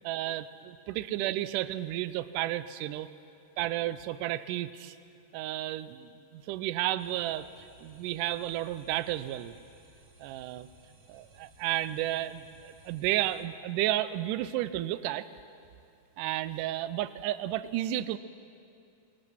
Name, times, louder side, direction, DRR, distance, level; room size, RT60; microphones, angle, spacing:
voice 1, 0.0-3.1 3.6-5.0 5.3-7.5 7.8-9.5 10.2-10.7 11.1-15.3 16.2-18.2, right 14 dB, 80° right, 14 dB, 2.1 m, -32 dB
sound 1, 7.0-13.4, right 2 dB, 35° right, 2.6 m, -59 dB
24.0 x 20.0 x 6.2 m, 2.5 s
omnidirectional pair, 3.8 m